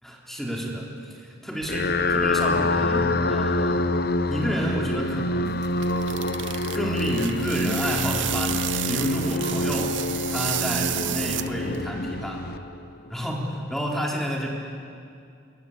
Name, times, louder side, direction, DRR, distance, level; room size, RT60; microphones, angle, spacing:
voice 1, 0.0-3.9 4.3-5.6 6.7-10.0 10.3-12.5 13.1-14.5, equal, ahead, -2 dB, 4.0 m, -30 dB
sound 1, 1.6-13.1, left 2 dB, 55° left, 1.0 m, -26 dB
sound 2, 5.5-11.8, right 13 dB, 80° right, 0.7 m, -31 dB
28.0 x 21.0 x 8.7 m, 2.4 s
head